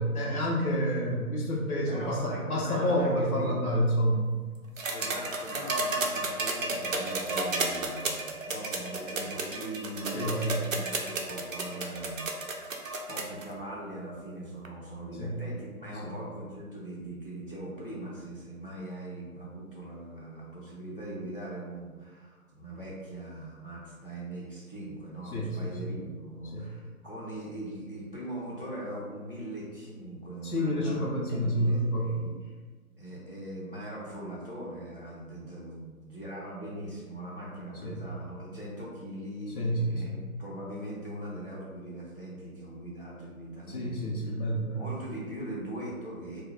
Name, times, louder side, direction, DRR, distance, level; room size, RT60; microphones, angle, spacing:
voice 1, 0.0-4.3 10.1-10.6 15.2-15.3 16.0-16.1 25.3-25.8 26.5-26.7 30.4-32.1 37.8-38.0 39.5-40.2 43.7-44.8, equal, 80° left, -3 dB, 0.7 m, -29 dB
voice 2, 1.9-3.6 4.9-12.7 13.1-32.5 33.0-44.4 44.7-46.4, right 1 dB, 40° left, -7 dB, 0.5 m, -41 dB
sound 1, 4.8-13.4 14.6-14.7, right 3 dB, 65° right, 0.5 m, -32 dB
2.2 x 2.1 x 3.5 m, 1.4 s
figure-of-eight pair, 150°, 44 cm